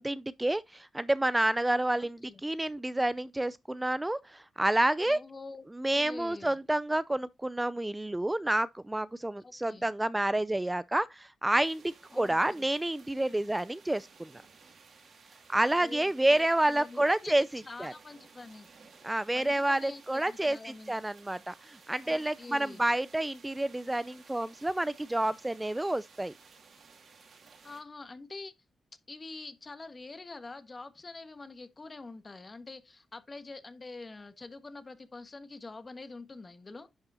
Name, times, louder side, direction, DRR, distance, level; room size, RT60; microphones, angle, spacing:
voice 1, 0.0-5.2 5.8-14.3 15.5-17.9 19.0-26.3, right 1 dB, 15° right, 0.4 m, -29 dB
voice 2, 2.0-2.4 5.1-6.6 9.4-9.8 12.1-12.7 15.7-18.9 19.3-21.0 22.0-22.8 27.6-28.5 29.1-36.9, left 3 dB, 35° left, 1.4 m, -46 dB
sound 1, 11.5-27.8, right 5 dB, 65° right, 2.4 m, -57 dB
10.5 x 5.6 x 2.7 m
supercardioid pair, 55°, 0 cm